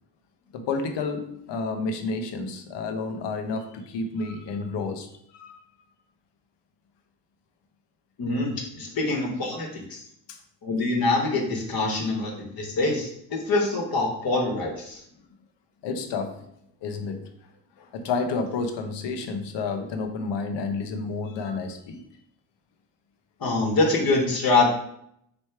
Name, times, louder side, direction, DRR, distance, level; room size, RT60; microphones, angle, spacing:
voice 1, 0.5-5.6 10.3-10.4 15.8-16.4 16.8-17.3 17.8-22.0, left 4 dB, 65° left, 6 dB, 0.8 m, -30 dB
voice 2, 8.2-10.0 10.6-15.0 23.4-24.7, left 3 dB, 50° left, -1 dB, 1.4 m, -25 dB
3.3 x 3.1 x 4.4 m, 0.72 s
supercardioid pair, 65°, 45 cm